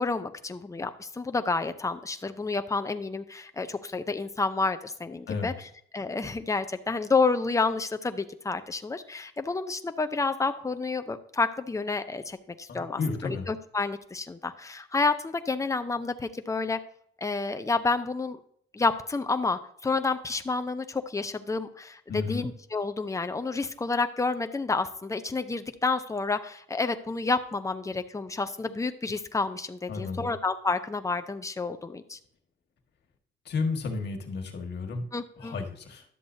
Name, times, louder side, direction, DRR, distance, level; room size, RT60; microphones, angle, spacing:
voice 1, 0.0-5.5 5.9-16.8 17.2-18.4 18.7-32.2 35.1-35.6, left 3 dB, 15° left, 9 dB, 0.7 m, -29 dB
voice 2, 12.7-13.5 22.1-22.5 29.9-30.3 33.5-35.0 35.4-36.0, left 4 dB, 55° left, 3 dB, 1.8 m, -32 dB
11.5 x 7.5 x 2.7 m, 0.65 s
cardioid pair, 90°, 20 cm